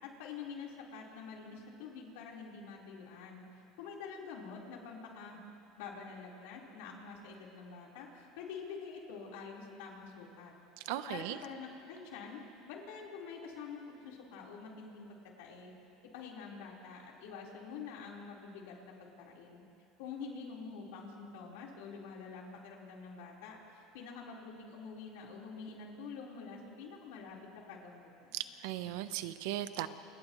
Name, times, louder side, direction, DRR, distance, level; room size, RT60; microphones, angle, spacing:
voice 1, 0.0-5.4 5.8-10.5 11.1-12.4 12.7-15.7 16.1-19.6 20.0-28.4, left 5 dB, 85° left, -3 dB, 4.3 m, -47 dB
voice 2, 10.8-11.4 28.3-29.9, right 13 dB, 80° right, 11 dB, 0.9 m, -37 dB
29.5 x 28.5 x 3.2 m, 2.7 s
cardioid pair, 145°, 0 cm